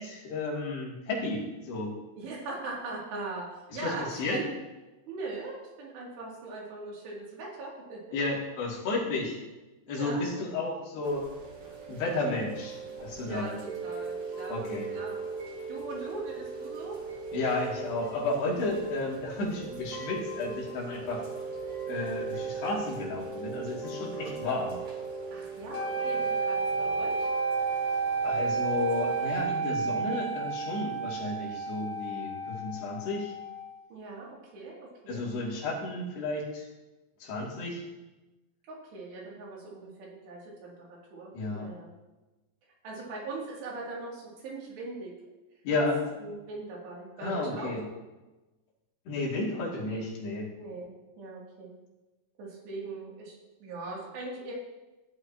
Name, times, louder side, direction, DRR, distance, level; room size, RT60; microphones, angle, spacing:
voice 1, 0.0-1.9 3.7-4.4 8.1-9.4 9.9-11.2 11.9-13.6 14.5-14.9 17.3-21.2 21.9-24.8 28.2-33.3 35.1-36.7 37.2-37.8 41.3-41.7 45.6-46.0 47.2-47.8 49.1-50.5, left 2 dB, 75° left, -4 dB, 4.7 m, -32 dB
voice 2, 2.1-3.5 3.7-4.5 5.1-8.2 9.9-10.4 13.2-15.2 15.7-17.0 24.1-24.5 25.3-27.3 33.9-35.2 35.5-35.6 38.7-41.9 42.8-45.1 46.2-47.8 50.6-51.7 52.4-53.3 53.6-54.5, right 3 dB, 85° right, -4 dB, 5.0 m, -40 dB
Chime / Rain, 11.0-29.4, right 4 dB, 35° right, 2.8 m, -39 dB
sound 1, 25.7-33.8, right 4 dB, 60° left, 3.1 m, -31 dB
16.5 x 11.5 x 3.0 m, 1.1 s
omnidirectional pair, 4.8 m